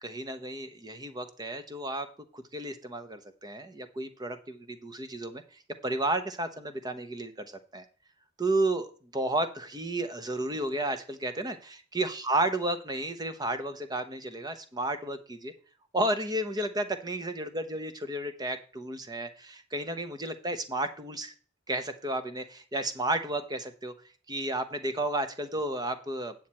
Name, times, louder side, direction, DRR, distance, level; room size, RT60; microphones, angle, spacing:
voice 1, 0.0-2.1 2.3-5.4 5.8-7.8 8.4-11.6 11.9-15.5 15.9-21.3 21.7-23.9 24.3-26.3, right 1 dB, 20° right, 9 dB, 0.9 m, -32 dB
9.4 x 7.4 x 4.3 m, 0.41 s
head